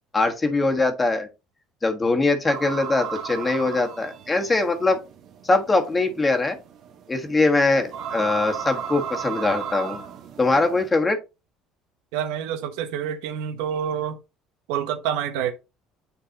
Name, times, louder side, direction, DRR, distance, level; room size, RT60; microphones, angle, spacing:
voice 1, 0.1-1.3 1.8-5.0 5.4-6.6 7.1-10.0 10.4-11.2, left 3 dB, 20° left, 1.4 m, -22 dB
sound 1, 2.4-10.9, right 7 dB, 60° right, 1.3 m, -35 dB
voice 2, 12.1-14.2 14.7-15.5, right 9 dB, 85° right, 0.8 m, -27 dB
9.2 x 3.9 x 2.8 m
supercardioid pair, 105°, 0 cm